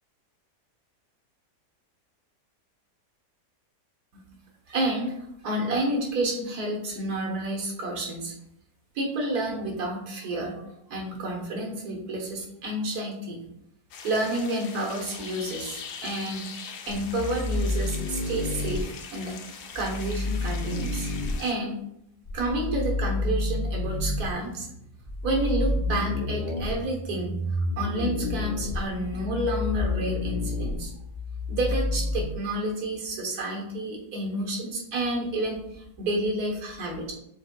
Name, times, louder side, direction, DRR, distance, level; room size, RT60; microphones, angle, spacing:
voice 1, 4.7-8.3 8.9-13.4 14.0-16.5 16.8-19.4 19.7-21.1 21.4-21.8 22.3-24.7 25.2-27.3 27.8-30.9 31.5-37.1, right 1 dB, 65° right, 0 dB, 1.5 m, -30 dB
sound 1, 13.9-21.5, left 6 dB, 85° left, 1.2 m, -42 dB
sound 2, 16.9-18.8 19.7-21.3 22.3-24.3 25.0-32.2, left 2 dB, 45° left, 1.2 m, -29 dB
6.7 x 3.5 x 2.2 m, 0.80 s
omnidirectional pair, 1.8 m